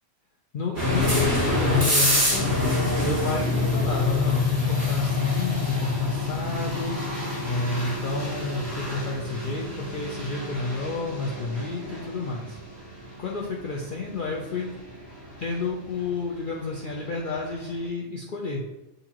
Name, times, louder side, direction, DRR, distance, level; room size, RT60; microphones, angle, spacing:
voice 1, 0.5-2.5 3.0-7.0 7.4-12.6 13.2-14.7 15.4-18.6, left 3 dB, 60° left, -1 dB, 0.6 m, -31 dB
sound 1, 0.7-17.5, left 2 dB, 15° right, 1.6 m, -27 dB
6.5 x 2.6 x 2.9 m, 0.99 s
omnidirectional pair, 1.2 m